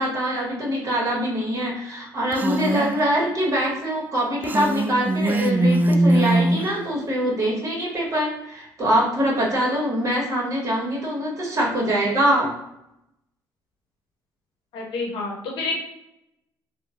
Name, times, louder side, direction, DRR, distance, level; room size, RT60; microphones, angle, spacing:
voice 1, 0.0-12.5, equal, 40° right, -3 dB, 1.3 m, -24 dB
Female speech woman speaking, 2.3-2.9 4.4-6.7, right 1 dB, 20° right, 0.3 m, -21 dB
voice 2, 14.7-15.8, left 3 dB, 70° left, 0 dB, 0.8 m, -28 dB
2.9 x 2.3 x 2.5 m, 0.83 s
supercardioid pair, 65°, 9 cm